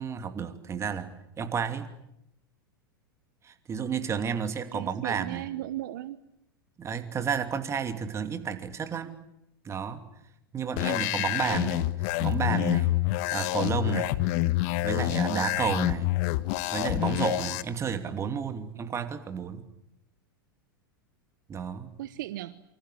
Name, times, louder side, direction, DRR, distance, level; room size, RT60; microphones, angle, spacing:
voice 1, 0.0-1.9 3.4-5.5 6.8-9.2 9.6-10.0 10.5-11.9 12.2-13.0 13.3-14.2 14.8-16.1 16.7-19.6 21.5-22.0, right 7 dB, 25° right, 8 dB, 2.8 m, -31 dB
voice 2, 4.7-6.2 22.0-22.6, right 14 dB, 60° right, 14 dB, 1.1 m, -36 dB
sound 1, 10.8-17.6, left 18 dB, 50° left, 1.3 m, -27 dB
27.5 x 25.0 x 8.4 m, 0.81 s
figure-of-eight pair, 95°, 12 cm